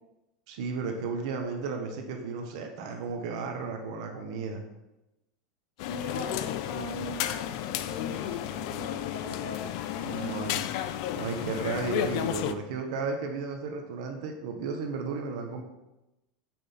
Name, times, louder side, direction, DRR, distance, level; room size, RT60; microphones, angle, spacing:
voice 1, 0.5-4.7 10.0-10.6 11.1-15.6, right 4 dB, 60° right, 3 dB, 0.9 m, -34 dB
voice 2, 5.8-10.8, left 3 dB, 70° left, 1 dB, 0.9 m, -39 dB
sound 1, 5.8-12.5, left 11 dB, 50° left, 0.4 m, -33 dB
5.9 x 4.2 x 5.1 m, 0.96 s
supercardioid pair, 170°, 4 cm